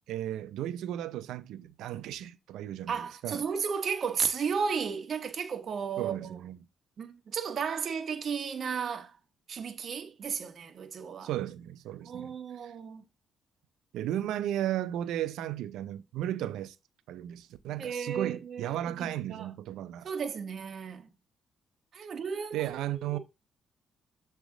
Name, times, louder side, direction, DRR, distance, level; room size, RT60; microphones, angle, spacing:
voice 1, 0.1-3.4 6.0-6.6 11.2-12.3 12.6-12.7 13.9-16.8 17.1-20.1 22.5-23.2, right 12 dB, 85° right, 0.6 m, -35 dB
voice 2, 2.9-6.4 7.0-9.2 9.5-11.3 12.0-13.0 17.8-19.5 20.0-21.1 21.9-23.2, right 6 dB, 55° right, 1.2 m, -34 dB
7.2 x 3.4 x 3.8 m
cardioid pair, 90°, 0 cm